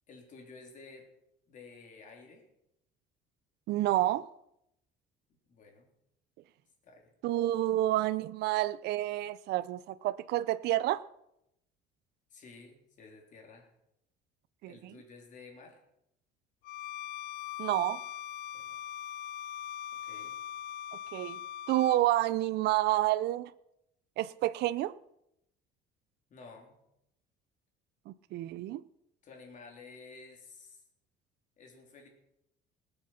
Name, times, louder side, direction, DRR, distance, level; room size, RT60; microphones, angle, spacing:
voice 1, 0.1-1.1 1.5-2.5 5.5-5.9 6.8-7.1 12.3-13.7 14.6-15.8 18.5-18.8 20.0-20.4 26.3-26.8 29.2-30.8 31.6-32.1, left 4 dB, 45° left, 3.7 m, -52 dB
voice 2, 3.7-4.3 7.2-11.0 14.6-14.7 17.6-18.0 21.1-21.4 21.7-23.5 24.2-24.9 28.1-28.8, right 15 dB, 65° right, 0.5 m, -29 dB
Bowed string instrument, 16.6-22.1, left 11 dB, 60° left, 0.5 m, -41 dB
20.0 x 7.8 x 5.8 m
cardioid pair, 135°, 19 cm